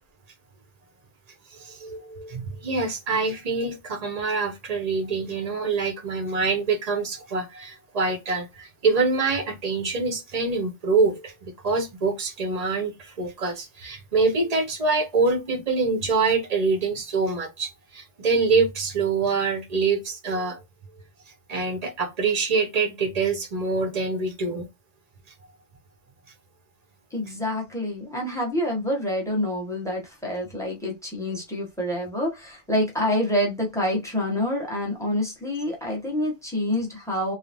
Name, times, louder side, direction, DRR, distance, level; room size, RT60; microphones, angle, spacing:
voice 1, 1.5-20.6 21.5-24.7, right 4 dB, 45° right, 0.6 m, -25 dB
voice 2, 27.1-37.3, left 1 dB, 5° left, 0.8 m, -27 dB
3.2 x 2.0 x 2.5 m
omnidirectional pair, 1.2 m